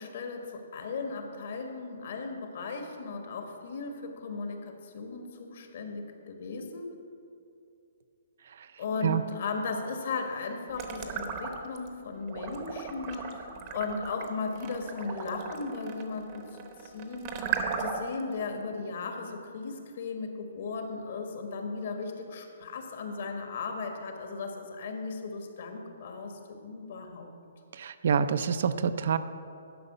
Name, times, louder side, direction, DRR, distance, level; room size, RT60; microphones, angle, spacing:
voice 1, 0.0-6.9 8.8-27.3, left 4 dB, 55° left, 4 dB, 1.4 m, -36 dB
sound 1, 10.7-11.9 12.3-18.2, right 6 dB, 30° right, 0.8 m, -36 dB
voice 2, 27.7-29.2, right 7 dB, 60° right, 12 dB, 0.4 m, -27 dB
11.0 x 5.4 x 6.7 m, 2.6 s
hypercardioid pair, 160°, 0 cm